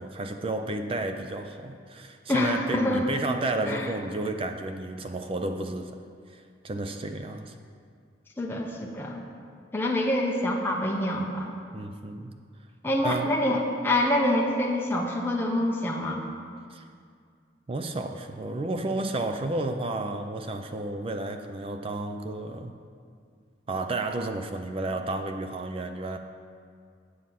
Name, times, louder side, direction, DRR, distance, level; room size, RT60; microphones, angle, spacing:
voice 1, 0.0-6.0 6.3-7.6 11.7-12.3 13.0-13.3 16.7-16.8 17.7-22.7 23.7-26.2, right 2 dB, 30° right, 6 dB, 0.4 m, -32 dB
voice 2, 2.3-3.0 3.6-3.9 8.4-9.2 9.7-11.5 12.8-16.2, left 1 dB, 10° left, -2 dB, 0.8 m, -26 dB
8.4 x 7.3 x 5.9 m, 2.2 s
head